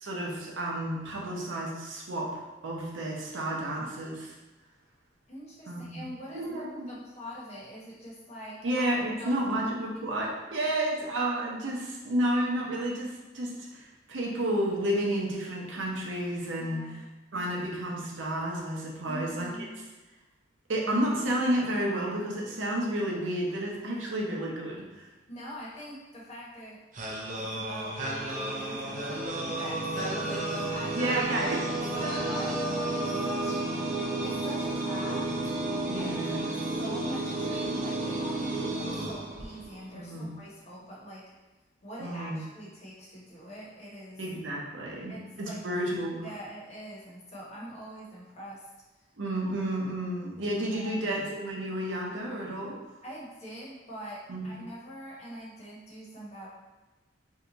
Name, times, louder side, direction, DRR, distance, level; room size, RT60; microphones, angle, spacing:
voice 1, 0.0-4.3 5.7-6.0 6.3-6.9 8.6-17.0 17.3-19.5 20.7-25.1 30.9-31.7 35.9-36.5 39.9-40.3 42.0-42.4 44.2-46.3 49.2-52.8 54.3-54.5, right 1 dB, 85° right, -2 dB, 0.7 m, -31 dB
voice 2, 5.3-8.7 9.2-9.6 10.6-10.7 16.6-17.0 19.0-19.9 25.3-26.8 27.3-31.2 31.9-33.6 34.2-35.3 35.9-41.3 41.8-44.2 45.1-45.6 46.2-48.7 50.7-51.1 53.0-56.5, equal, 35° left, -5 dB, 0.9 m, -44 dB
sound 1, 26.9-39.9, right 2 dB, 45° right, 0.5 m, -32 dB
2.7 x 2.3 x 3.8 m, 1.1 s
head